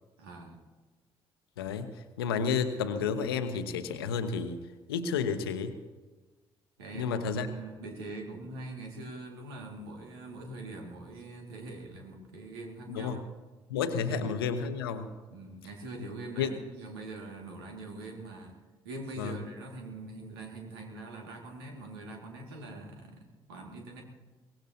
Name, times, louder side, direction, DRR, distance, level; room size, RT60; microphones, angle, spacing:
voice 1, 0.2-0.6 6.8-13.3 14.0-14.3 15.3-18.6 18.8-24.0, right 2 dB, 80° right, 1 dB, 2.1 m, -43 dB
voice 2, 1.6-4.6 4.9-5.8 7.0-7.5 12.9-13.2 13.7-15.1 16.4-16.6 19.2-19.4, left 6 dB, 80° left, 10 dB, 0.9 m, -31 dB
23.0 x 18.5 x 2.8 m, 1.3 s
figure-of-eight pair, 45°, 12 cm